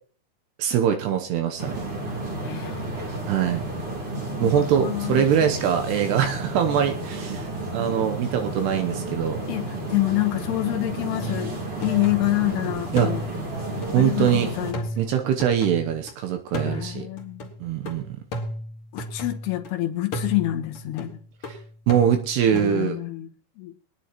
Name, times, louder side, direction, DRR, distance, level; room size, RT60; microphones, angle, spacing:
voice 1, 0.6-1.8 3.3-3.6 4.4-9.4 12.9-13.1 13.9-14.5 15.0-17.1 17.6-18.2 21.5-21.6 21.9-23.0, right 9 dB, 80° right, 5 dB, 3.0 m, -23 dB
sound 1, 1.6-14.7, right 2 dB, 40° right, 2.8 m, -32 dB
voice 2, 2.4-2.9 4.4-5.3 9.5-13.2 13.9-14.9 16.6-17.5 18.9-21.2 22.5-23.3 23.6-23.7, left 17 dB, 75° left, 4 dB, 3.2 m, -27 dB
sound 2, 11.2-12.5 13.0-16.1 16.5-19.7 20.1-22.8, equal, 45° left, 2.0 m, -34 dB
24.5 x 9.9 x 3.0 m, 0.42 s
omnidirectional pair, 4.8 m